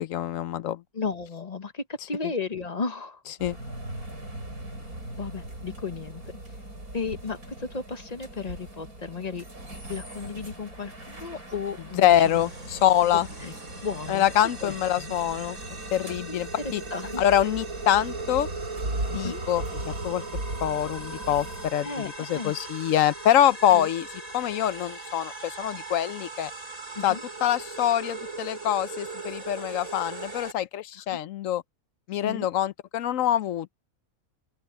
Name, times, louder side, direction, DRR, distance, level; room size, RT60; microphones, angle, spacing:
voice 1, 0.0-0.8 3.4-3.6 12.0-13.3 14.1-15.6 15.9-16.8 17.2-18.5 19.1-20.2 20.6-24.1 24.3-26.5 27.0-31.6 32.1-33.7, left 11 dB, 65° left, 1.0 m, -25 dB
voice 2, 0.9-3.2 4.8-4.9 5.2-6.4 6.9-9.4 9.9-12.5 13.1-13.5 13.8-15.1 16.3-17.2 19.2-19.4 21.8-22.5 23.7-23.9 26.9-27.2 31.1-31.2 32.2-32.5, left 4 dB, 30° left, 0.9 m, -34 dB
sound 1, 3.4-21.7, right 1 dB, 90° right, 8.2 m, -39 dB
sound 2, 12.1-30.5, right 3 dB, 65° right, 6.4 m, -39 dB
open air
omnidirectional pair, 1.5 m